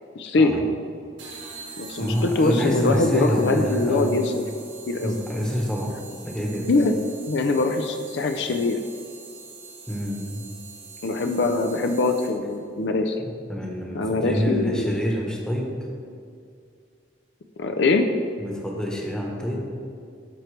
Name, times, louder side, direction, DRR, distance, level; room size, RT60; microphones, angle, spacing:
voice 1, 0.2-0.6 1.8-4.4 4.9-5.2 6.7-6.9 7.3-8.8 11.0-13.2 13.9-14.9 17.6-18.1, left 3 dB, 65° left, 5 dB, 0.5 m, -22 dB
sound 1, 1.2-12.6, right 5 dB, 75° right, 1.7 m, -44 dB
voice 2, 2.0-4.2 5.0-5.9 6.2-6.7 9.9-10.4 13.2-15.8 18.4-19.6, equal, 5° left, -1 dB, 1.1 m, -27 dB
12.5 x 4.5 x 3.3 m, 2.3 s
head